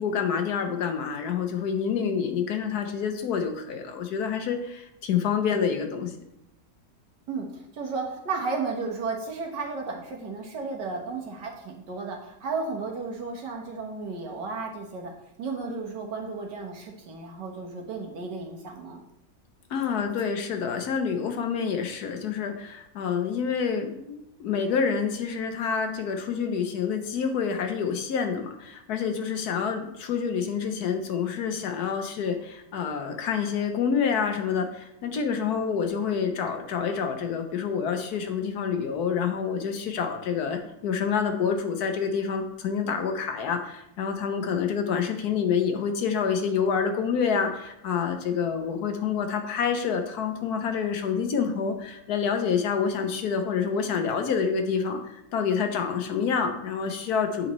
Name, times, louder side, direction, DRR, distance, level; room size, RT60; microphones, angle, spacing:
voice 1, 0.0-6.1 19.7-57.5, left 6 dB, 70° left, 6 dB, 1.3 m, -27 dB
voice 2, 7.3-15.1 15.4-19.0, right 4 dB, 90° right, 0 dB, 1.8 m, -33 dB
8.6 x 5.2 x 3.1 m, 0.82 s
omnidirectional pair, 1.8 m